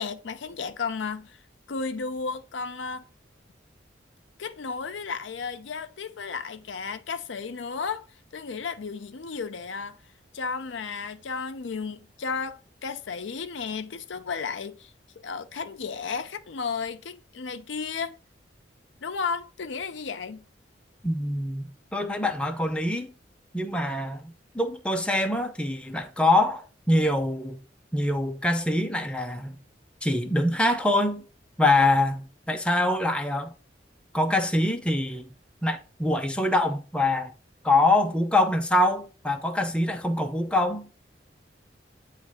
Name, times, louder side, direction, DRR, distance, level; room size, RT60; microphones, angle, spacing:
voice 1, 0.0-1.4 1.7-3.1 4.4-8.1 8.3-10.0 10.3-18.2 19.0-20.5, left 5 dB, 80° left, 0.5 m, -33 dB
voice 2, 21.0-23.1 23.5-27.6 27.9-29.6 30.0-31.2 31.6-33.5 34.1-35.3 35.6-37.3 37.6-40.9, left 1 dB, 5° left, 0.6 m, -24 dB
8.1 x 3.2 x 4.8 m
head